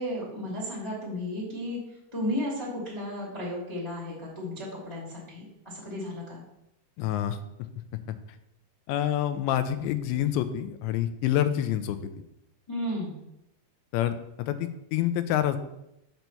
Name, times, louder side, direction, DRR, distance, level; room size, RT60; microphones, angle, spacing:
voice 1, 0.0-1.8 2.1-6.4 12.7-13.2, left 1 dB, 10° left, -5 dB, 1.7 m, -34 dB
voice 2, 7.0-7.4 8.9-12.0 13.9-15.6, left 11 dB, 85° left, 10 dB, 2.9 m, -27 dB
6.1 x 5.8 x 6.7 m, 0.85 s
omnidirectional pair, 5.2 m